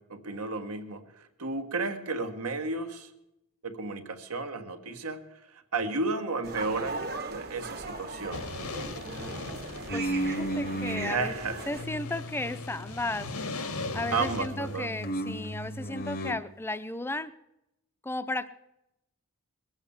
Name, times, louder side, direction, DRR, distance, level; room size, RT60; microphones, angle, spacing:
voice 1, 0.0-3.1 3.6-5.2 5.5-8.5 11.0-11.6 14.1-14.9, right 3 dB, 75° right, 6 dB, 1.6 m, -33 dB
sound 1, 6.4-11.8, right 3 dB, 45° right, 1.3 m, -39 dB
sound 2, 8.3-14.8, left 3 dB, 90° left, 1.6 m, -39 dB
voice 2, 9.0-9.5 9.9-11.4 11.7-13.5 13.9-17.3 18.0-18.5, left 2 dB, 10° left, 13 dB, 0.6 m, -35 dB
sound 3, 9.9-11.2 11.7-13.4 13.7-16.4, right 1 dB, 45° left, 0.9 m, -35 dB
20.5 x 8.1 x 7.1 m, 0.86 s
head